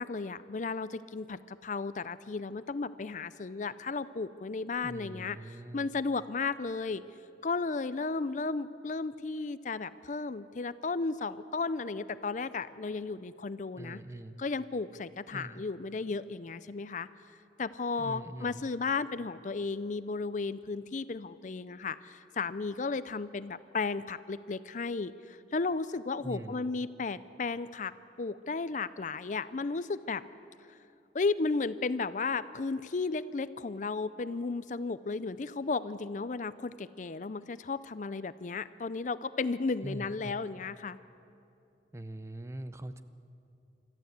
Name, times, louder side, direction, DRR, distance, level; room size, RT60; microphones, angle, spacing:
voice 1, 0.0-7.0 7.4-14.0 14.4-17.1 17.6-27.9 28.2-30.2 31.1-41.0, left 4 dB, 45° left, 15 dB, 0.5 m, -34 dB
voice 2, 4.8-5.9 13.8-14.3 15.3-15.6 18.0-18.6 26.2-26.6 39.8-40.4 41.9-43.0, right 1 dB, 15° right, 11 dB, 0.7 m, -42 dB
26.0 x 13.5 x 8.1 m, 2.7 s
head